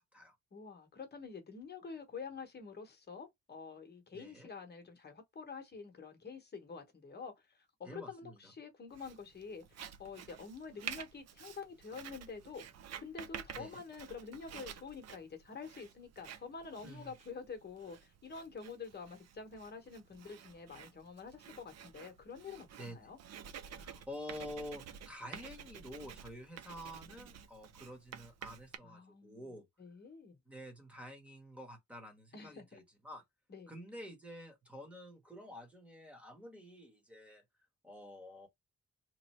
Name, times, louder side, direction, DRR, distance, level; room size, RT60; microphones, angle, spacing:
voice 1, 0.0-0.3 4.1-4.5 7.8-8.4 13.6-13.8 16.8-17.1 22.8-23.0 23.8-29.6 30.5-33.2 33.7-37.4 37.8-38.5, equal, 5° right, 1.2 m, -49 dB
voice 2, 0.5-12.7 13.0-23.2 28.8-30.4 32.3-32.8 33.5-33.7, left 5 dB, 35° left, 1.1 m, -48 dB
Writing, 8.9-28.8, right 8 dB, 60° right, 0.5 m, -51 dB
3.1 x 2.6 x 4.2 m
wide cardioid pair, 180°, 29 cm